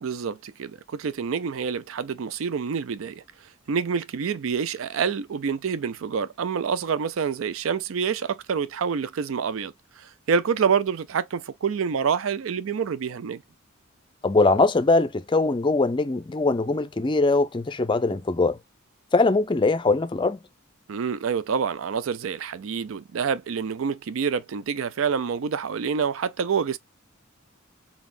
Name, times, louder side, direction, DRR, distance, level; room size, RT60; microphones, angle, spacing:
voice 1, 0.0-3.2 3.7-13.4 20.9-26.8, right 6 dB, 75° right, 0.4 m, -27 dB
voice 2, 14.2-18.6 19.1-20.4, left 3 dB, 25° left, 0.4 m, -21 dB
4.1 x 4.1 x 2.5 m
head